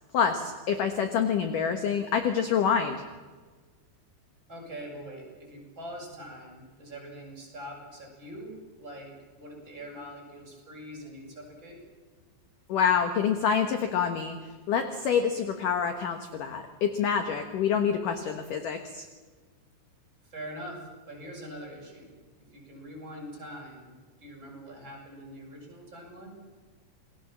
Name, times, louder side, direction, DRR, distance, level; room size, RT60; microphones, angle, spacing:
voice 1, 0.1-3.0 12.7-14.4 14.7-19.0, left 7 dB, 65° left, 7 dB, 2.2 m, -27 dB
voice 2, 4.5-11.8 20.2-22.2 22.5-23.9 24.2-26.3, equal, 25° right, -1 dB, 7.1 m, -43 dB
28.5 x 20.5 x 7.4 m, 1.4 s
omnidirectional pair, 5.5 m